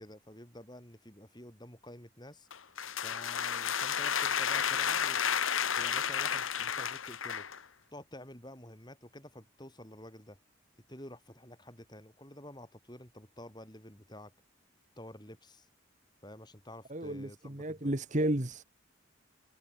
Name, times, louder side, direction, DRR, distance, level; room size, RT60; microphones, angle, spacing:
voice 1, 0.0-2.5 3.0-5.2 5.8-7.5 7.9-10.4 10.9-14.3 15.0-15.7 16.2-18.0, left 1 dB, 20° left, 4.8 m, -50 dB
sound 1, 2.5-7.6, left 8 dB, 75° left, 1.4 m, -32 dB
voice 2, 16.9-18.6, right 1 dB, 35° right, 1.6 m, -32 dB
head